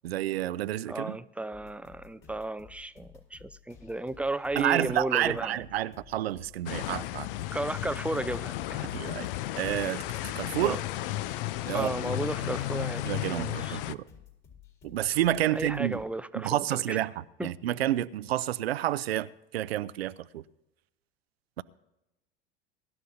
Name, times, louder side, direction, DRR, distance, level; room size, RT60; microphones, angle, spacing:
voice 1, 0.0-1.2 4.6-7.3 8.8-9.3 9.6-10.0 10.4-10.8 11.7-11.9 13.0-14.0 14.8-16.0 16.3-20.4 21.6-21.7, right 13 dB, 80° right, 0.6 m, -29 dB
voice 2, 0.9-5.6 7.5-8.9 10.6-10.8 11.7-13.8 15.5-17.0 17.4-17.5, right 2 dB, 5° right, 0.5 m, -34 dB
sound 1, 1.5-16.0, left 8 dB, 45° left, 4.3 m, -54 dB
sound 2, 6.7-13.9, left 15 dB, 60° left, 0.6 m, -34 dB
23.0 x 12.0 x 2.7 m
hypercardioid pair, 80°, 31 cm